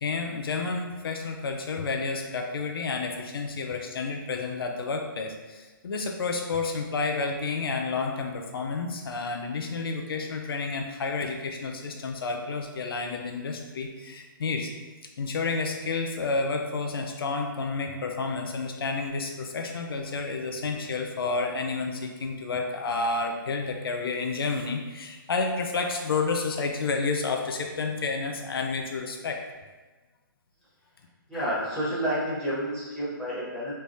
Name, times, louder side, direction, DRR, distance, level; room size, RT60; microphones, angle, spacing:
voice 1, 0.0-14.7 15.2-29.4 31.3-31.6, left 4 dB, 85° left, 3 dB, 0.5 m, -30 dB
voice 2, 31.3-33.7, equal, 5° left, -11 dB, 1.1 m, -29 dB
3.3 x 3.2 x 2.7 m, 1.3 s
hypercardioid pair, 160°, 12 cm